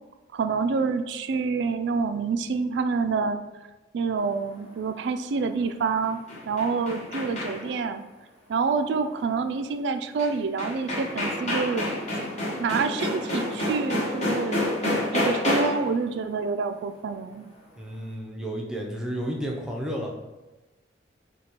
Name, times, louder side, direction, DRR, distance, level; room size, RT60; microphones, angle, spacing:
voice 1, 0.3-3.4 3.9-6.2 6.5-8.0 8.5-11.9 12.6-17.5, right 4 dB, 70° right, 9 dB, 0.3 m, -27 dB
sound 1, 6.1-7.8 10.2-10.3 10.6-15.9, left 1 dB, 40° left, 1.1 m, -28 dB
voice 2, 17.7-20.1, equal, 5° right, -2 dB, 0.5 m, -32 dB
5.0 x 2.3 x 2.9 m, 1.1 s
head